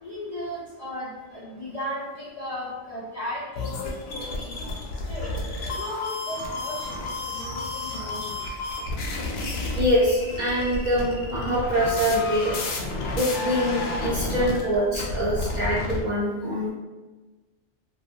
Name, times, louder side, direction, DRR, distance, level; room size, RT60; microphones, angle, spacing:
voice 1, 0.0-4.5 5.1-5.3 5.8-8.4, left 1 dB, 50° left, -8 dB, 0.4 m, -35 dB
sound 1, 3.6-16.0, left 2 dB, 75° left, 0.9 m, -31 dB
voice 2, 9.7-12.5 13.1-16.7, equal, 50° right, -7 dB, 0.5 m, -24 dB
2.5 x 2.3 x 2.6 m, 1.2 s
omnidirectional pair, 1.2 m